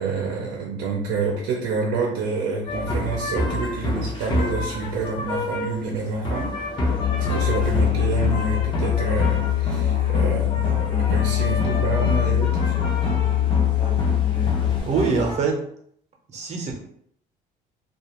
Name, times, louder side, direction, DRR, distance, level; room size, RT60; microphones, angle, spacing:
voice 1, 0.0-6.5 7.1-12.8, right 4 dB, 80° right, 0 dB, 0.5 m, -28 dB
sound 1, 2.7-15.4, left 1 dB, 30° left, 0.7 m, -28 dB
Musical instrument, 6.9-14.8, left 12 dB, 90° left, 1.2 m, -23 dB
voice 2, 14.9-15.6 16.3-16.8, right 4 dB, 40° right, 1 dB, 0.7 m, -24 dB
2.4 x 2.3 x 2.9 m, 0.67 s
cardioid pair, 110°, 17 cm